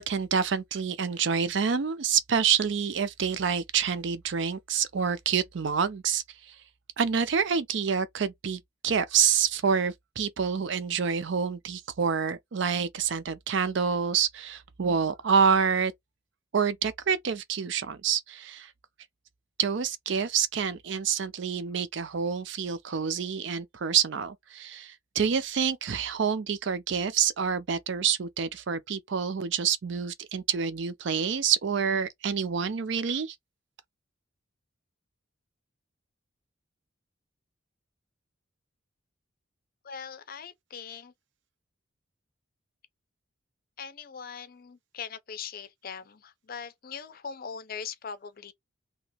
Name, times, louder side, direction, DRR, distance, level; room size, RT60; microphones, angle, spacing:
voice 1, 0.0-6.2 7.0-15.9 16.5-18.7 19.6-33.3, right 7 dB, 60° right, 0.5 m, -27 dB
voice 2, 39.8-41.1 43.8-48.5, left 6 dB, 45° left, 0.5 m, -41 dB
2.9 x 2.7 x 2.9 m
head